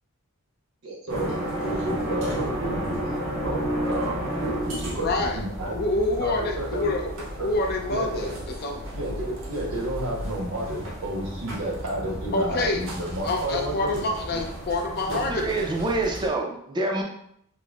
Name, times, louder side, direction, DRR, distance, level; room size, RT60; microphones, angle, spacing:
voice 1, 0.8-1.3 1.6-3.0 3.4-5.8 6.2-6.9 7.4-7.5 7.9-8.3 8.9-13.7 14.3-14.4 15.1-15.2, right 1 dB, 80° right, 0 dB, 1.0 m, -31 dB
sound 1, 1.1-16.3, equal, 65° right, 0.7 m, -33 dB
voice 2, 4.9-5.4 5.6-7.1 7.4-8.8 12.3-12.9 13.2-15.6, left 2 dB, 50° left, 2 dB, 0.5 m, -27 dB
voice 3, 15.1-17.0, right 2 dB, 20° right, 0 dB, 0.4 m, -26 dB
5.7 x 2.1 x 2.3 m, 0.69 s
head